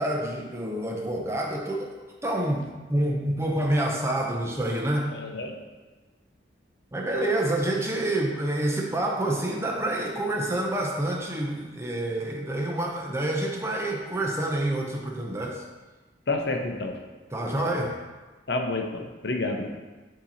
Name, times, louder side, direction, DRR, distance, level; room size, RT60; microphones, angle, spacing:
voice 1, 0.0-1.9 2.2-5.1 6.9-15.6 17.3-18.0, right 1 dB, 15° right, -1 dB, 0.6 m, -27 dB
voice 2, 5.1-5.5 16.3-17.0 18.5-19.7, left 2 dB, 65° left, 3 dB, 0.6 m, -29 dB
8.4 x 2.9 x 4.1 m, 1.2 s
head